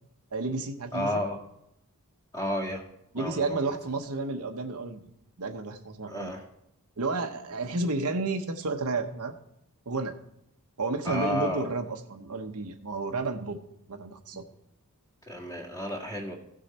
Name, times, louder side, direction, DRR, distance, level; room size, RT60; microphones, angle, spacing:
voice 1, 0.3-1.2 3.1-5.0 5.4-6.4 7.0-9.4 9.9-10.2 10.8-13.6 13.9-14.4, right 3 dB, 85° right, 5 dB, 1.1 m, -31 dB
voice 2, 0.9-1.4 2.3-2.8 3.2-3.8 6.1-6.4 11.1-11.7 15.3-16.4, left 1 dB, 15° left, 1 dB, 1.8 m, -32 dB
16.0 x 6.5 x 4.3 m, 0.79 s
head